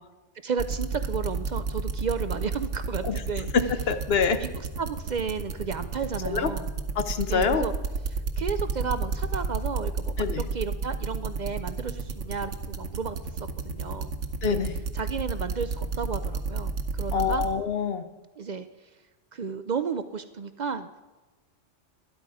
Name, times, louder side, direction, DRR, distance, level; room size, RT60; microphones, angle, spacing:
voice 1, 0.4-3.5 4.4-4.5 4.8-6.7 7.3-7.7 8.1-14.1 14.5-14.6 14.9-17.4 18.4-18.7 19.3-20.9, right 5 dB, 55° right, 11 dB, 0.5 m, -33 dB
sound 1, 0.6-17.5, right 4 dB, 90° right, 1.3 m, -30 dB
voice 2, 3.5-4.4 6.3-6.5 7.0-7.6 10.2-10.5 14.4-14.7 17.1-18.0, left 6 dB, 60° left, 10 dB, 1.0 m, -25 dB
12.5 x 11.5 x 4.8 m, 1.2 s
omnidirectional pair, 1.2 m